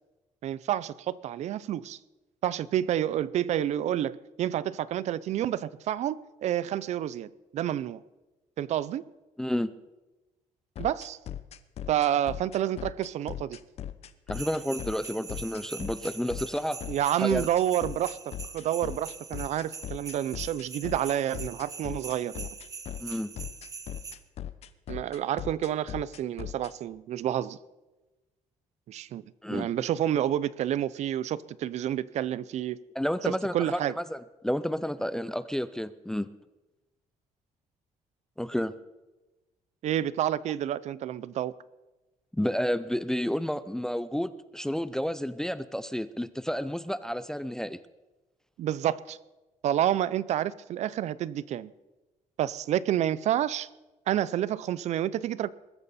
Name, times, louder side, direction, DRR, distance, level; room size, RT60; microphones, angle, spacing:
voice 1, 0.4-2.0 2.4-8.0 8.6-9.0 10.8-11.2 11.9-13.6 16.9-18.2 18.5-22.5 24.9-27.6 28.9-29.2 29.5-32.8 33.3-33.9 39.8-41.5 48.6-49.2 49.6-51.7 52.4-53.7 54.1-55.5, right 11 dB, 60° right, 0.5 m, -29 dB
voice 2, 9.4-9.7 14.3-16.8 17.2-17.5 23.0-23.3 29.4-29.7 33.0-36.3 38.4-38.7 42.3-47.8, equal, 5° left, 0.4 m, -30 dB
sound 1, 10.8-26.7, left 11 dB, 50° left, 0.7 m, -39 dB
sound 2, 14.3-24.2, right 5 dB, 25° right, 0.8 m, -43 dB
21.5 x 13.5 x 4.2 m
cardioid pair, 170°, 13 cm